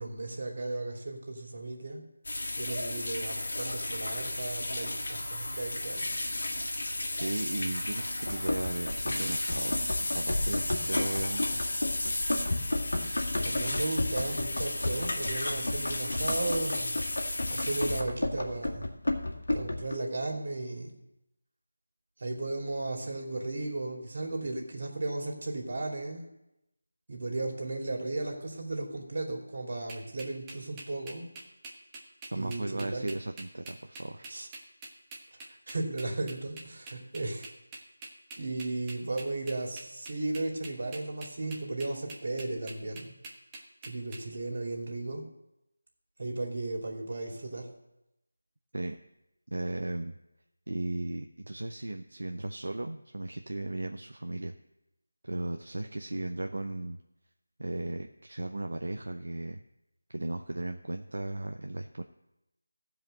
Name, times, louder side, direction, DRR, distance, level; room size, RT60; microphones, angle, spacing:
voice 1, 0.0-2.0 2.6-6.2 13.4-17.0 17.5-18.9 19.5-21.0 22.2-26.2 27.1-31.3 32.3-33.1 34.3-34.5 35.7-37.5 38.4-43.1 43.8-45.2 46.2-47.7, right 2 dB, 50° right, 1 dB, 2.6 m, -35 dB
sound 1, 2.2-18.0, left 2 dB, 60° left, 1.7 m, -33 dB
voice 2, 7.2-9.8 10.1-11.6 32.3-34.3 48.7-49.0 49.5-50.2 50.7-54.5 55.2-57.0 57.6-59.6 60.1-62.0, right 2 dB, 70° right, 5 dB, 0.7 m, -36 dB
Run, 8.3-20.0, left 2 dB, 80° left, 2.0 m, -33 dB
sound 2, 29.9-44.2, right 2 dB, 15° right, 1.1 m, -45 dB
15.0 x 5.1 x 6.6 m, 0.90 s
figure-of-eight pair, 165°, 0 cm